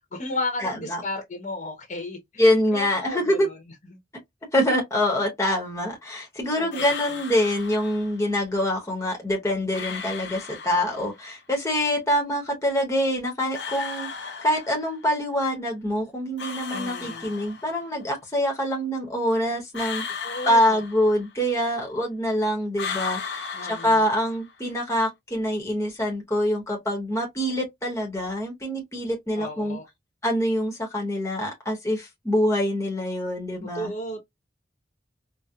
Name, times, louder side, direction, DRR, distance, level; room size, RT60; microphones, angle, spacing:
voice 1, 0.1-2.2 2.7-3.6 3.9-4.0 6.6-6.8 16.7-17.3 20.2-20.8 23.5-24.1 29.4-29.9 33.7-34.2, left 1 dB, 40° left, 0.9 m, -33 dB
voice 2, 0.6-1.0 2.4-3.5 4.5-29.8 30.2-33.9, equal, 15° left, 0.9 m, -25 dB
sound 1, 6.7-8.2 9.7-11.2 13.5-15.1 16.4-17.9 19.7-21.5 22.7-24.6, left 6 dB, 70° left, 0.8 m, -35 dB
4.3 x 2.1 x 2.3 m
head